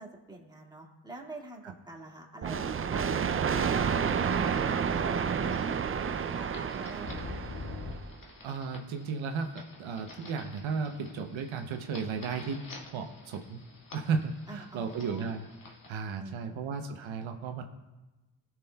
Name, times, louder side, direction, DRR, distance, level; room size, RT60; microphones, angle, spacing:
voice 1, 0.0-7.5 14.5-15.3 16.2-16.7, right 2 dB, 10° right, -1 dB, 1.9 m, -46 dB
sound 1, 2.4-8.0, right 7 dB, 30° right, 0.4 m, -30 dB
sound 2, 3.3-15.9, left 3 dB, 45° left, 1.7 m, -48 dB
voice 2, 8.4-9.5 9.8-12.6 12.9-13.6 13.9-15.5 15.9-17.6, right 5 dB, 85° right, 5 dB, 0.8 m, -34 dB
18.0 x 6.0 x 2.3 m, 1.1 s
cardioid pair, 55°, 46 cm